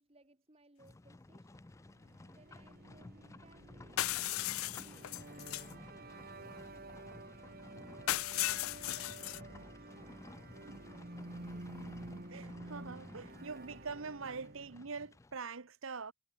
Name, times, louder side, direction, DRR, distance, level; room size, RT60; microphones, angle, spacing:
voice 1, 0.0-1.6 2.0-7.0 7.7-11.8, right 2 dB, 30° right, 2.0 m, -65 dB
Livestock farm animals working animals, 0.8-15.4, left 2 dB, 15° left, 0.3 m, -55 dB
sound 1, 1.9-14.9, right 2 dB, 45° right, 1.7 m, -50 dB
sound 2, 4.0-5.7 8.1-9.4, left 15 dB, 85° left, 0.4 m, -36 dB
voice 2, 12.3-16.1, right 4 dB, 75° right, 1.0 m, -44 dB
head